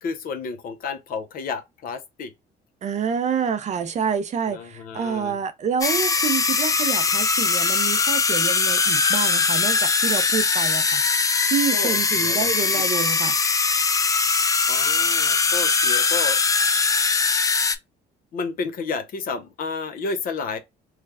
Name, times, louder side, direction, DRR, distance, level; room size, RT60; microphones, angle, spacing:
voice 1, 0.0-2.3 4.5-5.4 11.7-12.5 12.7-12.9 14.7-16.4 18.3-20.6, left 4 dB, 60° left, 0.8 m, -31 dB
voice 2, 2.8-13.4, right 7 dB, 45° right, 0.6 m, -27 dB
sound 1, 5.8-17.8, left 4 dB, 20° left, 0.4 m, -21 dB
3.2 x 2.3 x 3.4 m
cardioid pair, 110°, 17 cm